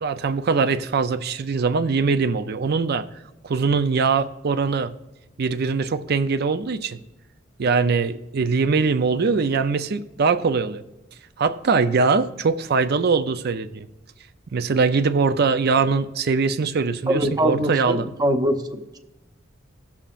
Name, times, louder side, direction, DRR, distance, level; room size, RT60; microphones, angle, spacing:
voice 1, 0.0-3.1 3.4-4.9 5.4-7.0 7.6-10.8 11.4-13.9 14.5-18.0, right 4 dB, 55° right, 11 dB, 0.5 m, -22 dB
voice 2, 17.1-19.0, equal, 20° right, 6 dB, 0.7 m, -23 dB
17.5 x 7.2 x 2.5 m, 0.96 s
head